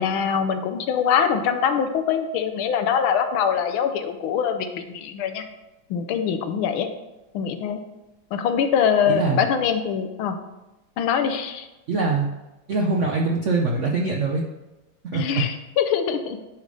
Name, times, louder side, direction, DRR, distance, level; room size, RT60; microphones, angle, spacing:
voice 1, 0.0-5.5 5.9-6.9 7.3-7.8 8.3-10.4 11.0-11.7 15.1-16.4, left 7 dB, 85° left, 7 dB, 1.5 m, -23 dB
voice 2, 9.1-9.4 11.9-12.3 12.7-14.4 15.1-15.5, right 3 dB, 85° right, 0 dB, 0.6 m, -23 dB
10.0 x 3.3 x 5.2 m, 1.0 s
omnidirectional pair, 2.2 m